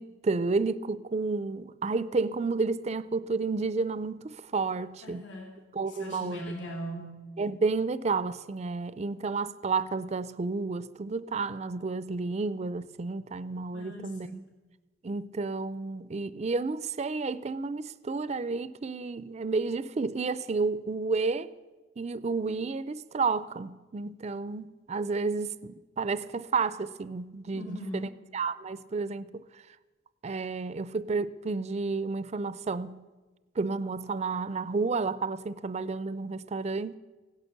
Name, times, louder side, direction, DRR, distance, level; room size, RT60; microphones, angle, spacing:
voice 1, 0.0-5.3 5.7-6.4 7.4-14.4 15.0-21.5 22.0-29.4 30.2-33.0 33.6-36.9, right 4 dB, 35° right, 0.4 m, -31 dB
voice 2, 5.0-7.2 13.7-14.5 27.5-28.1, equal, 75° left, 2.4 m, -40 dB
16.5 x 11.0 x 6.7 m
head